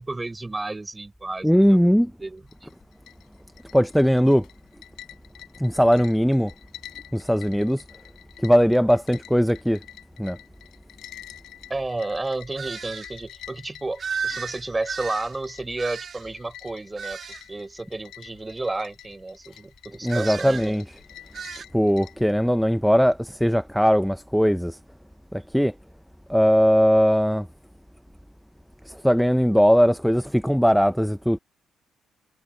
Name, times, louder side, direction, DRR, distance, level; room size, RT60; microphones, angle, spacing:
voice 1, 0.0-2.7 11.7-17.2 17.5-20.8, right 2 dB, 20° right, 4.2 m, -32 dB
voice 2, 1.4-2.1 3.7-4.5 5.6-6.5 7.1-7.8 8.4-9.8 10.2-10.4 20.0-20.8 21.7-24.8 25.3-25.7 26.3-27.5 28.9-31.4, equal, ahead, 0.6 m, -19 dB
sound 1, 2.4-22.3, left 13 dB, 85° left, 4.6 m, -48 dB
sound 2, 12.6-13.1 14.0-16.4 17.0-17.5 20.1-20.7 21.3-21.7, right 6 dB, 50° right, 2.1 m, -34 dB
cardioid pair, 90°, 0 cm